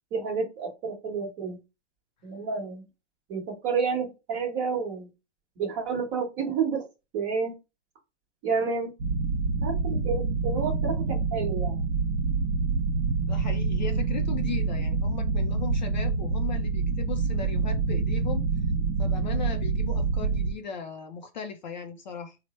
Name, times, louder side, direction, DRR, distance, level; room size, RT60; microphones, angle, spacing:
voice 1, 0.1-1.6 2.2-2.8 3.3-5.1 5.6-6.9 7.1-7.5 8.4-8.9 9.6-11.8, right 5 dB, 20° right, 1.1 m, -30 dB
sound 1, 9.0-20.5, right 4 dB, 65° right, 0.9 m, -27 dB
voice 2, 13.2-18.5 19.0-22.4, left 7 dB, 40° left, 0.4 m, -37 dB
3.1 x 2.1 x 4.1 m
hypercardioid pair, 150°, 35 cm